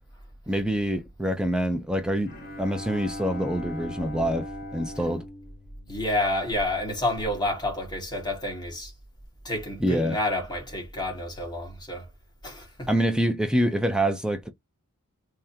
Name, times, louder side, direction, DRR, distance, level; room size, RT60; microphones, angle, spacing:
voice 1, 0.5-5.2 9.8-10.2 12.9-14.5, equal, 5° right, 0.6 m, -26 dB
Bowed string instrument, 2.3-6.6, equal, 45° left, 1.3 m, -39 dB
voice 2, 5.9-8.9 9.4-12.1 12.4-12.9, left 1 dB, 20° left, 2.0 m, -29 dB
3.5 x 3.3 x 2.8 m
head